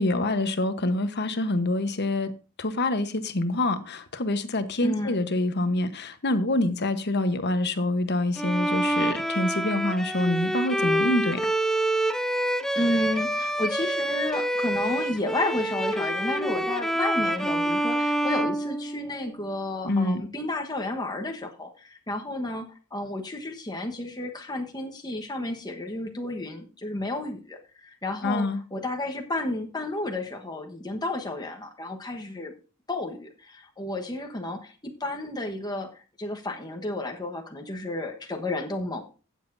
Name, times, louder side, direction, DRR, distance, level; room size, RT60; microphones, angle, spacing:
voice 1, 0.0-2.3 2.6-11.4 19.8-20.2 28.2-28.6, left 1 dB, 55° left, 1.1 m, -26 dB
voice 2, 4.8-5.2 12.7-32.5 32.9-35.9 36.2-39.0, left 2 dB, 20° left, 1.3 m, -32 dB
Bowed string instrument, 8.4-19.4, right 1 dB, ahead, 0.4 m, -27 dB
15.5 x 7.5 x 2.7 m
head